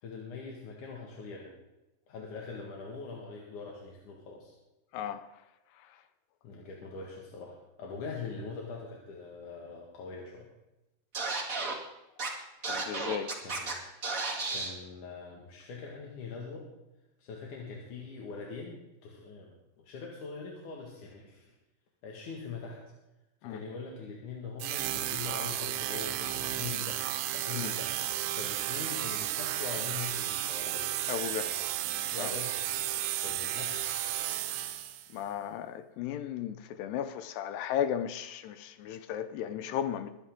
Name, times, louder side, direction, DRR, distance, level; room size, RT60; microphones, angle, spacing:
voice 1, 0.0-1.5 2.1-4.5 6.4-10.5 13.4-13.7 14.5-16.6 17.2-21.5 22.0-22.8 23.4-27.0 27.3-30.9 32.1-32.5 33.2-33.8, left 4 dB, 55° left, 2.9 m, -42 dB
voice 2, 4.9-5.4 5.7-6.0 12.6-13.3 23.4-23.6 27.5-27.7 31.1-31.7 32.2-32.3 35.1-40.1, left 9 dB, 80° left, 2.7 m, -35 dB
Scratching (performance technique), 11.1-11.7 12.2-12.3 12.6-13.7 14.0-14.7, right 3 dB, 30° right, 1.5 m, -33 dB
sound 1, 24.6-35.2, right 13 dB, 90° right, 3.1 m, -33 dB
22.5 x 11.0 x 3.7 m
omnidirectional pair, 4.9 m